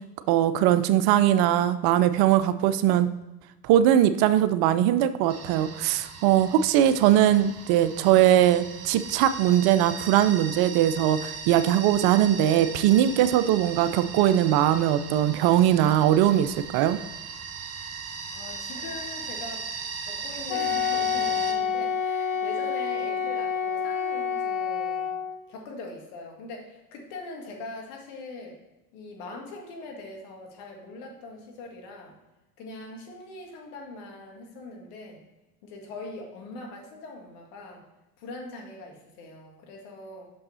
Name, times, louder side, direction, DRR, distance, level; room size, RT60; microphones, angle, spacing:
voice 1, 0.3-3.1 3.6-17.0, right 11 dB, 50° right, 13 dB, 0.5 m, -21 dB
sound 1, 5.3-21.5, right 5 dB, 30° right, 1.1 m, -38 dB
voice 2, 18.3-19.7 20.0-25.1 25.5-28.6 28.9-32.1 32.6-35.2 35.6-37.8 38.2-40.3, left 2 dB, 70° left, 1 dB, 2.0 m, -42 dB
Wind instrument woodwind instrument, 20.5-25.4, left 7 dB, 45° left, 0.7 m, -28 dB
6.2 x 5.4 x 4.2 m, 1.0 s
hypercardioid pair, 80°, 48 cm